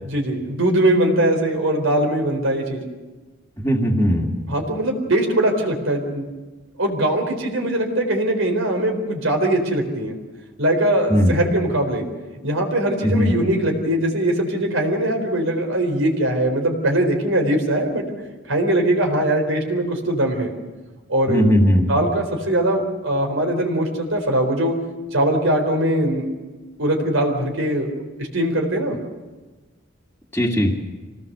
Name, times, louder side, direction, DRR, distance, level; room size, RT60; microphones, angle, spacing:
voice 1, 0.0-2.8 4.5-6.3 6.8-10.2 10.6-12.0 12.4-18.0 18.5-20.5 21.1-21.4 21.9-24.7 25.1-26.2 26.8-27.9 28.3-29.0, right 1 dB, 75° right, 2 dB, 4.2 m, -21 dB
voice 2, 3.6-4.3 11.1-11.4 13.0-13.3 21.3-21.9 30.3-30.7, equal, 10° left, -2 dB, 2.2 m, -18 dB
26.0 x 18.5 x 6.9 m, 1.2 s
head